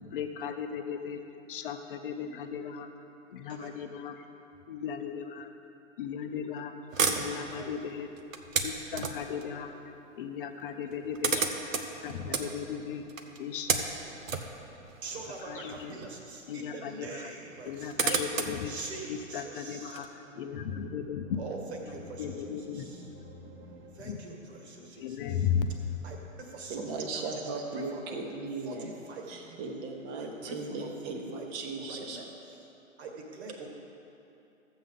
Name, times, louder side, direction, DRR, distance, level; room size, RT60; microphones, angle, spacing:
voice 1, 0.1-1.2 1.5-2.9 3.3-4.3 4.7-5.5 6.0-6.7 7.2-8.1 8.6-9.7 10.2-11.4 12.0-13.0 13.4-13.8 15.4-15.9 16.5-17.3 17.6-18.7 19.1-21.4 22.2-22.9 24.0-24.2 25.0-25.7, left 7 dB, 40° left, 7 dB, 0.7 m, -36 dB
sound 1, 6.9-9.4 10.5-10.6 10.8-16.3 16.6-16.7 17.5-20.0, right 5 dB, 80° right, 1.0 m, -33 dB
voice 2, 15.0-18.2 18.6-20.0 20.4-20.8 21.2-25.5 26.0-28.2 28.6-29.8 30.2-31.5 31.7-32.3 33.0-33.7, right 3 dB, 55° right, 1 dB, 1.8 m, -44 dB
voice 3, 26.7-28.9 29.3-32.2, right 3 dB, 30° right, 2 dB, 1.1 m, -37 dB
13.0 x 8.0 x 3.7 m, 3.0 s
figure-of-eight pair, 120°, 39 cm